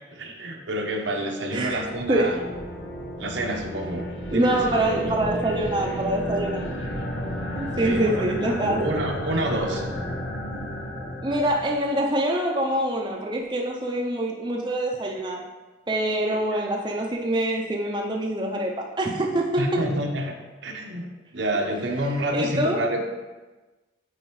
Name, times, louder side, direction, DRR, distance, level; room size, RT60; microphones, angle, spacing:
voice 1, 0.1-2.4 3.2-4.9 7.8-8.2 8.7-9.8 19.6-20.4 20.6-23.1, right 1 dB, 80° right, 2 dB, 0.9 m, -28 dB
sound 1, 1.5-12.0, equal, 80° left, 1.0 m, -32 dB
voice 2, 2.1-2.4 4.3-6.7 7.6-9.0 11.2-15.5 15.9-19.8 22.3-22.8, right 1 dB, 25° right, 0 dB, 0.5 m, -25 dB
8.8 x 4.3 x 3.1 m, 1.2 s
head